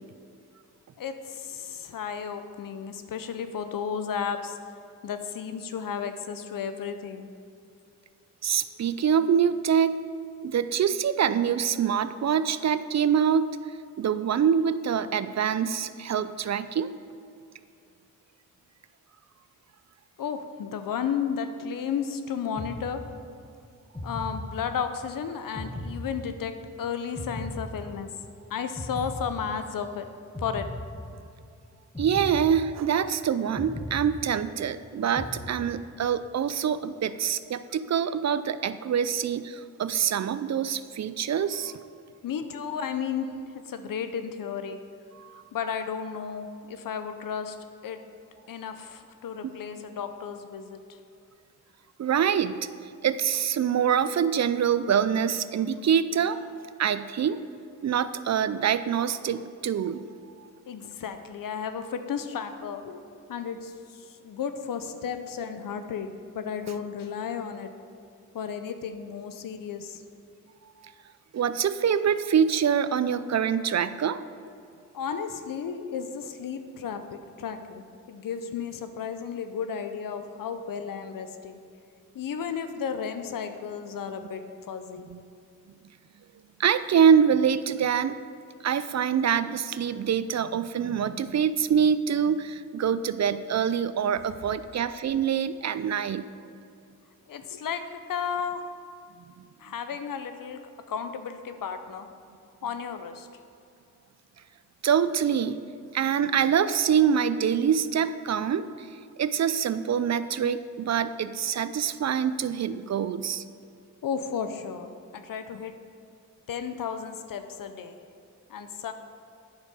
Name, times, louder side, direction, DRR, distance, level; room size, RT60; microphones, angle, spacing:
voice 1, 1.0-4.6 5.0-7.3 20.2-23.0 24.0-28.1 28.5-30.1 30.4-30.7 35.2-35.3 42.2-44.8 45.5-47.6 47.8-48.0 48.5-50.8 60.7-63.0 63.3-67.7 68.3-70.1 74.9-81.6 82.1-85.1 97.3-98.7 99.6-100.6 100.9-102.1 102.6-103.3 114.0-115.8 116.5-118.0 118.5-118.9, left 7 dB, 80° left, 9 dB, 0.7 m, -33 dB
voice 2, 8.4-10.0 10.4-13.6 14.0-16.9 32.0-41.7 45.2-45.4 52.0-52.6 53.0-56.4 56.8-57.4 57.8-60.0 71.3-74.2 85.1-85.2 86.6-88.1 88.6-96.2 104.8-105.6 105.9-108.9 109.2-113.4, right 8 dB, 55° right, 14 dB, 0.5 m, -25 dB
sound 1, 22.6-23.4 23.9-25.0 25.6-26.7 27.2-28.3 28.8-29.9 30.3-31.4 31.9-33.1 33.6-34.7 35.2-36.0, left 1 dB, 15° left, 1.3 m, -38 dB
9.2 x 6.6 x 4.9 m, 2.4 s
cardioid pair, 45°, 33 cm